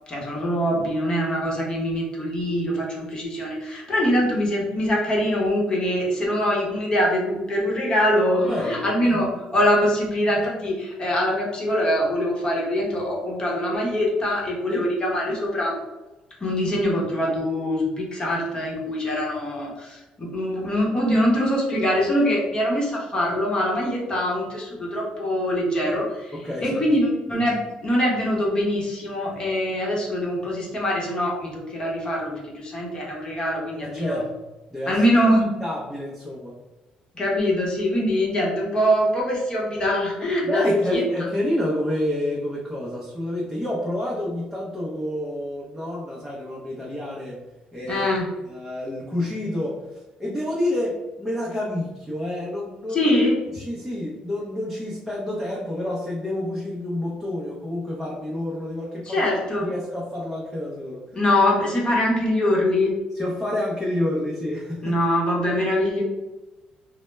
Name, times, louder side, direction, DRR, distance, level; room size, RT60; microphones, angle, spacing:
voice 1, 0.1-15.8 16.4-26.3 26.6-34.2 34.9-35.5 37.2-41.0 47.9-48.3 52.9-53.4 59.0-59.7 61.1-62.9 64.8-66.0, equal, 30° left, -3 dB, 0.9 m, -23 dB
voice 2, 8.4-8.9 14.7-14.9 26.3-26.8 27.3-27.4 33.8-34.3 34.7-35.0 35.6-36.5 40.4-47.4 47.7-48.1 48.5-49.8 50.2-53.1 53.5-59.2 59.6-61.0 63.1-65.0, left 1 dB, 5° right, -6 dB, 0.6 m, -29 dB
2.1 x 2.0 x 3.2 m, 1.1 s
cardioid pair, 85°, 3 cm